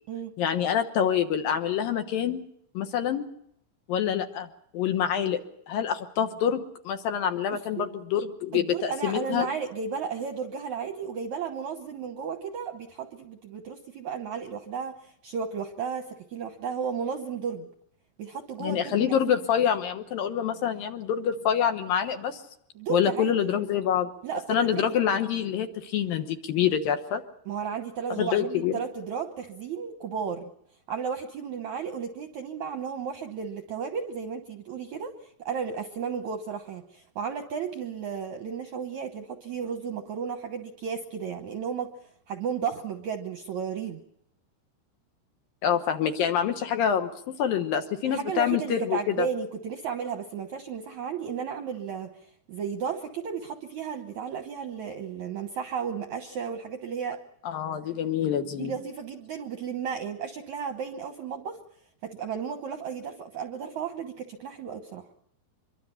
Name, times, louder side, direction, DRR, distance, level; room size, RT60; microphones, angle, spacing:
voice 1, 0.4-2.4 2.7-3.3 3.9-4.5 4.7-5.4 5.7-9.5 18.6-22.4 22.9-24.1 24.5-27.2 28.2-28.8 45.6-47.1 47.4-49.3 57.4-58.7, left 9 dB, 70° left, 7 dB, 2.6 m, -26 dB
voice 2, 7.5-7.9 8.5-17.7 18.2-19.1 22.8-23.3 24.2-25.0 27.5-30.5 30.9-35.1 35.4-41.9 42.3-44.0 48.0-52.1 52.5-57.2 58.6-61.6 62.0-65.1, right 6 dB, 70° right, 6 dB, 1.8 m, -34 dB
25.0 x 23.0 x 5.8 m, 0.73 s
omnidirectional pair, 4.8 m